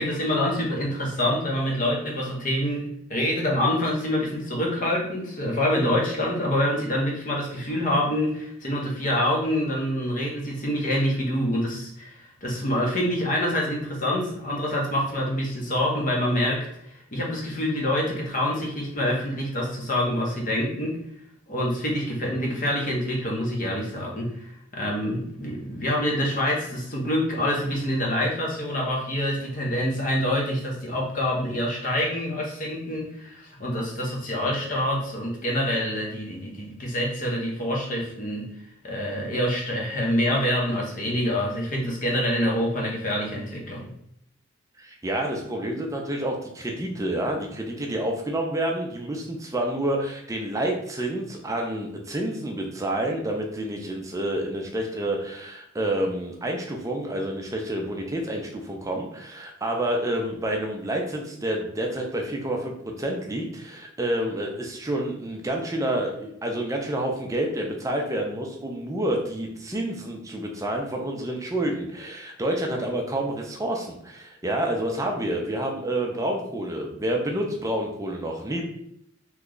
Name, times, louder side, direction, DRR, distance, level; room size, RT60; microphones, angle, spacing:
voice 1, 0.0-21.0 21.5-38.5 38.8-43.9, left 1 dB, 40° left, -2 dB, 0.8 m, -26 dB
voice 2, 44.8-78.6, right 1 dB, 15° right, 1 dB, 0.5 m, -28 dB
3.1 x 2.3 x 3.7 m, 0.75 s
head